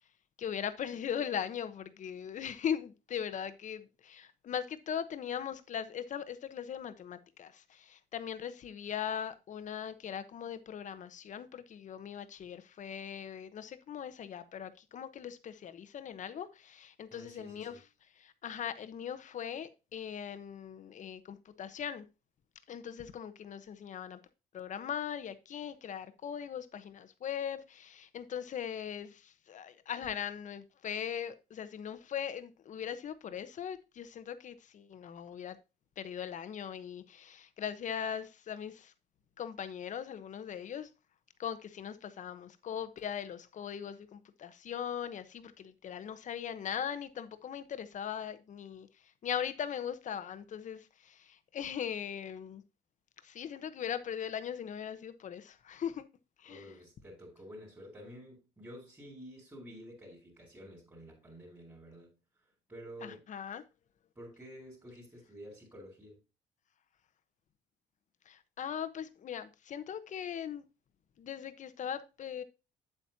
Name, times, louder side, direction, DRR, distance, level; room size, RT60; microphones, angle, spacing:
voice 1, 0.4-17.8 18.1-22.0 22.7-24.2 24.5-35.6 36.0-38.9 39.4-40.9 41.4-52.6 53.2-56.1 56.4-56.7 63.0-63.6 68.3-70.7 71.2-72.4, left 8 dB, 45° left, 1.0 m, -40 dB
voice 2, 17.1-17.8 56.5-62.2 62.7-63.2 64.2-66.2, equal, 15° right, 4.1 m, -50 dB
8.1 x 8.1 x 2.8 m
cardioid pair, 110°, 17 cm